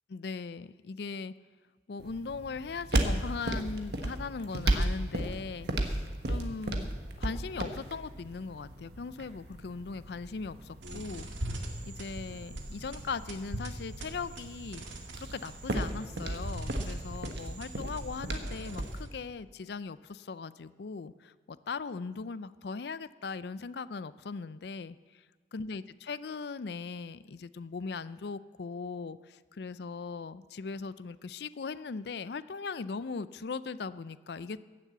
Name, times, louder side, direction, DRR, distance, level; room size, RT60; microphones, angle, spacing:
voice 1, 0.1-1.3 1.9-6.9 7.2-11.3 11.9-14.9 15.3-25.2 25.5-34.6, left 4 dB, 65° left, 15 dB, 0.4 m, -39 dB
sound 1, 2.0-19.0, right 1 dB, 65° right, 1.3 m, -35 dB
sound 2, 10.8-19.2, right 1 dB, 85° right, 1.9 m, -42 dB
15.5 x 7.4 x 8.0 m, 1.4 s
head